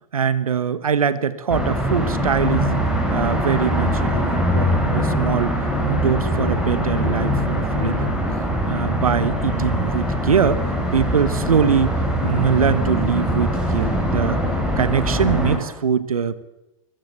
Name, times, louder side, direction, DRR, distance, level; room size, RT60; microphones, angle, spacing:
voice 1, 0.1-2.8 3.1-5.5 5.8-8.1 8.7-11.9 12.2-14.4 14.8-16.4, right 7 dB, 80° right, 16 dB, 1.4 m, -22 dB
sound 1, 1.5-15.6, equal, 5° right, 5.7 m, -22 dB
24.0 x 15.0 x 8.3 m, 0.96 s
hypercardioid pair, 105°, 18 cm